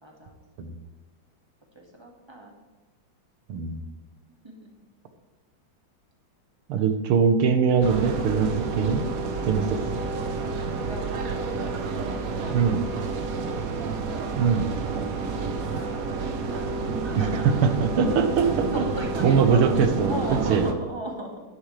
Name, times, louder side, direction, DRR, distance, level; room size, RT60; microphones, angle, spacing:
voice 1, 0.0-0.4 1.7-2.5 4.4-4.7 6.8-6.9 10.6-13.6 14.9-17.6 18.7-21.4, right 1 dB, 15° right, 0 dB, 1.7 m, -38 dB
voice 2, 3.5-3.8 6.7-9.1 9.5-9.8 12.5-12.8 14.4-14.7 17.2-17.3 17.6-18.8 19.2-20.2 20.5-20.7, right 6 dB, 90° right, 8 dB, 1.9 m, -22 dB
sound 1, 7.8-20.7, right 4 dB, 55° right, 1.1 m, -30 dB
11.5 x 9.9 x 3.3 m, 1.2 s
omnidirectional pair, 2.3 m